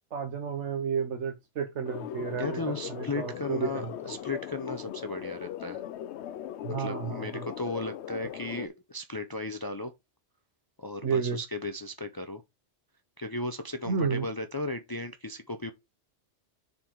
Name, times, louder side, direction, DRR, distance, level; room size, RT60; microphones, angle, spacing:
voice 1, 0.1-3.9 6.6-7.5 11.0-11.4 13.9-14.2, right 6 dB, 85° right, 1.2 m, -31 dB
sound 1, 1.8-8.7, left 11 dB, 75° left, 0.8 m, -39 dB
voice 2, 2.4-5.8 6.8-9.9 10.8-12.4 13.2-15.7, left 2 dB, 30° left, 0.4 m, -35 dB
7.0 x 4.0 x 4.5 m
omnidirectional pair, 1.2 m